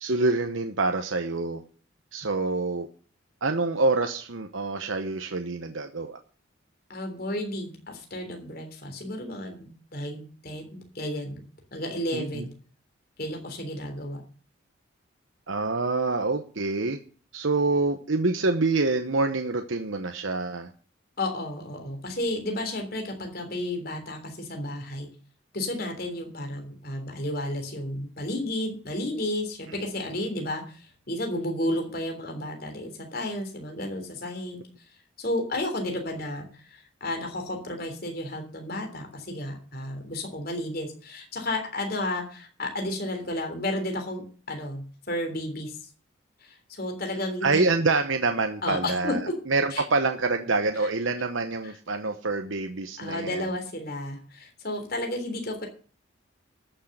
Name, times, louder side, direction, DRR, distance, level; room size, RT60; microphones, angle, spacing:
voice 1, 0.0-1.6 2.1-2.9 3.4-6.2 12.1-12.4 15.5-17.0 17.3-20.7 47.4-49.2 49.5-53.5, right 3 dB, 70° right, 6 dB, 1.0 m, -26 dB
voice 2, 6.9-11.4 11.7-12.5 13.2-14.2 21.2-25.1 25.5-34.6 35.2-45.9 46.4-47.6 48.6-49.3 49.7-49.8 50.8-50.9 53.0-55.7, left 1 dB, 45° left, 4 dB, 3.4 m, -32 dB
13.5 x 6.5 x 8.0 m, 0.41 s
head